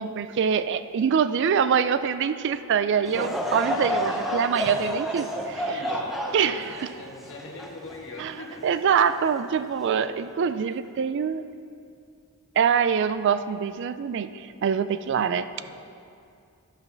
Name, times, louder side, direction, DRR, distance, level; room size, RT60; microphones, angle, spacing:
voice 1, 0.0-5.3 6.3-6.6 8.2-8.3 8.6-11.4 12.6-15.5, right 7 dB, 55° right, 12 dB, 0.3 m, -24 dB
Laughter / Crowd, 3.1-8.5 9.1-9.2 10.0-10.2, equal, ahead, 0.6 m, -30 dB
voice 2, 3.7-4.4 5.1-5.2 5.6-8.6 15.5-15.8, left 2 dB, 60° left, 0 dB, 1.4 m, -41 dB
11.5 x 5.5 x 5.8 m, 2.4 s
head